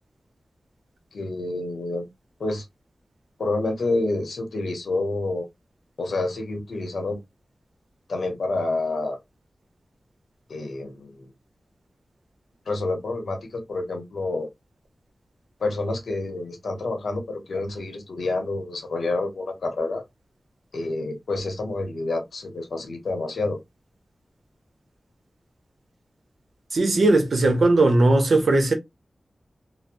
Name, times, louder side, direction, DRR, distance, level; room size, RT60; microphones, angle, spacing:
voice 1, 1.1-2.1 2.4-2.6 3.4-5.5 6.0-7.2 8.1-9.2 10.5-11.3 12.7-14.5 15.6-20.0 20.7-23.6, left 2 dB, 90° left, 0.9 m, -28 dB
voice 2, 26.7-28.7, right 2 dB, 75° right, 0.7 m, -18 dB
3.1 x 2.0 x 2.5 m
wide cardioid pair, 90°, 0 cm